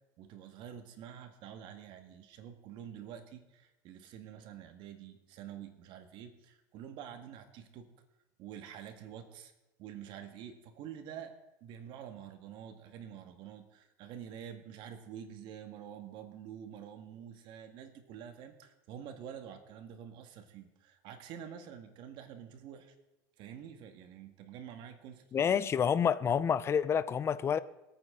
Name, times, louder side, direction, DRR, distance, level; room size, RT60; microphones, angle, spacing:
voice 1, 0.2-7.9 8.4-9.5 9.8-22.9 23.4-25.6, right 9 dB, 60° right, 7 dB, 1.8 m, -48 dB
voice 2, 25.3-27.6, left 7 dB, 30° left, 16 dB, 0.6 m, -28 dB
24.0 x 8.9 x 3.8 m, 0.96 s
supercardioid pair, 125°, 9 cm